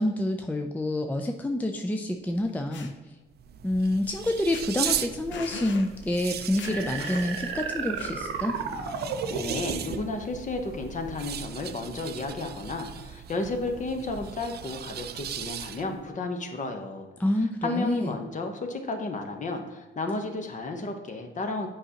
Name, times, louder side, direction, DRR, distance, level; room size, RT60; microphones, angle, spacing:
voice 1, 0.0-2.9 3.6-8.6 17.2-18.1, left 1 dB, 10° left, 4 dB, 0.4 m, -28 dB
sound 1, 2.4-2.9 4.1-4.3 4.5-5.0 5.3-5.9 6.2-6.3 6.6-7.5 8.0-8.4, left 5 dB, 65° left, 0.7 m, -40 dB
sound 2, 3.3-16.1, right 10 dB, 55° right, 0.4 m, -38 dB
sound 3, 6.6-10.2, right 5 dB, 90° right, 0.9 m, -33 dB
voice 2, 9.3-17.1 17.6-21.7, left 2 dB, 40° left, 5 dB, 1.0 m, -32 dB
7.7 x 5.0 x 2.9 m, 1.2 s
cardioid pair, 90°, 20 cm